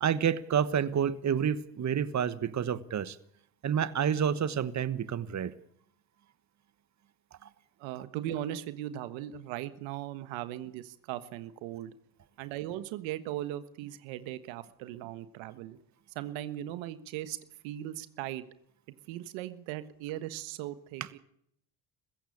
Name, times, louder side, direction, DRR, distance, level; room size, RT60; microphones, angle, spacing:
voice 1, 0.0-3.2 3.6-5.5 7.4-7.5, right 8 dB, 40° right, 1.2 m, -29 dB
voice 2, 7.8-11.9 12.4-15.8 16.1-17.4 17.6-18.4 19.1-21.2, right 13 dB, 85° right, 1.5 m, -38 dB
21.5 x 15.5 x 8.6 m
supercardioid pair, 75°, 44 cm